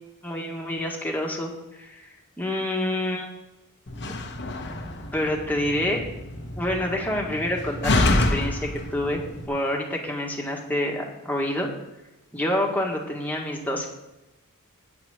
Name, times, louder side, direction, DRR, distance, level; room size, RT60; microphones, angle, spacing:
voice 1, 0.2-3.3 5.1-6.0 6.6-11.7 12.3-13.9, left 1 dB, 10° left, -1 dB, 1.7 m, -28 dB
Slam, 3.9-9.5, left 2 dB, 50° left, 1.1 m, -27 dB
9.2 x 6.0 x 7.3 m, 1.0 s
head